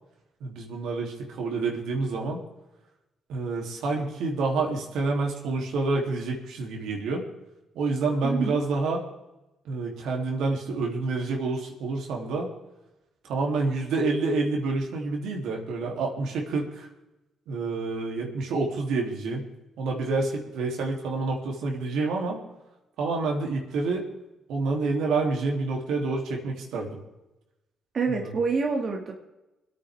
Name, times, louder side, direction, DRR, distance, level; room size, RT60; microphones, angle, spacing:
voice 1, 0.4-2.4 3.3-7.2 7.7-9.0 9.6-12.5 13.2-16.9 17.5-19.5 19.8-22.4 23.0-24.1 24.5-27.0 28.1-28.3, right 3 dB, 85° right, 0 dB, 3.1 m, -28 dB
voice 2, 8.2-8.6 27.9-29.1, right 4 dB, 50° right, 1 dB, 2.1 m, -27 dB
25.5 x 9.2 x 3.6 m, 0.98 s
cardioid pair, 90°, 0 cm